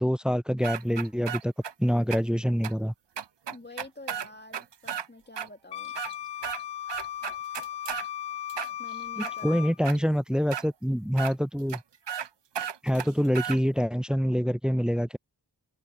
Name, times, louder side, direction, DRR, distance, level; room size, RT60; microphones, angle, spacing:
voice 1, 0.0-1.5 1.8-2.9 9.2-11.8 12.8-15.2, equal, ahead, 0.4 m, -26 dB
sound 1, 0.6-1.7 2.1-2.2 2.6-2.7 3.2-5.1 5.4-5.5 5.8-6.6 6.9-8.1 8.5-9.3 9.8-10.0 10.5-10.6 11.2-11.3 11.7-11.8 12.1-12.3 12.5-13.6, right 9 dB, 85° right, 0.8 m, -34 dB
voice 2, 3.5-5.9 8.8-10.1, left 2 dB, 25° left, 2.4 m, -48 dB
Wind instrument woodwind instrument, 5.7-9.8, left 11 dB, 80° left, 0.5 m, -37 dB
open air
cardioid pair, 40°, 41 cm